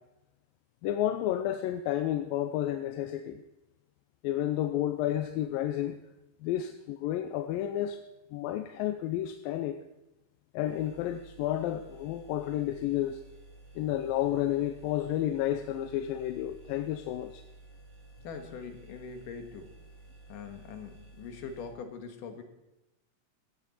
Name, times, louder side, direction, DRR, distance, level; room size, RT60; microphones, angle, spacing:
voice 1, 0.8-3.4 4.2-6.0 6.4-8.0 8.3-9.8 10.5-13.2 13.8-17.4, left 12 dB, 85° left, 8 dB, 2.4 m, -31 dB
sound 1, 10.6-21.7, right 2 dB, 30° right, 6.6 m, -53 dB
voice 2, 18.2-19.7 20.3-22.4, left 5 dB, 70° left, 6 dB, 2.9 m, -42 dB
16.0 x 15.0 x 4.2 m, 0.95 s
omnidirectional pair, 4.0 m